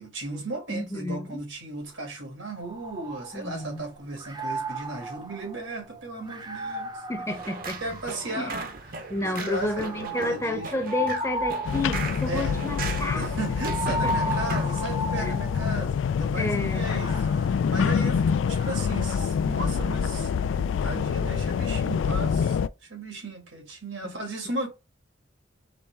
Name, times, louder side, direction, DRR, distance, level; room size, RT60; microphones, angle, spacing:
voice 1, 0.0-7.0 7.8-10.7 12.3-12.8 13.1-20.3 20.8-24.7, right 2 dB, 85° right, 2.1 m, -36 dB
voice 2, 0.7-1.4 3.3-3.8 7.1-7.8 8.3-8.5 9.1-13.2 13.9-14.3 15.2-15.3 16.4-16.9 24.0-24.1, left 1 dB, 15° left, 0.8 m, -31 dB
sound 1, 2.6-3.8 4.2-8.5 9.2-15.9 16.7-19.3, right 1 dB, 20° right, 0.5 m, -35 dB
sound 2, 7.3-14.9, right 4 dB, 50° right, 0.8 m, -37 dB
sound 3, 11.6-22.7, left 6 dB, 80° left, 0.3 m, -26 dB
4.2 x 3.3 x 3.4 m
head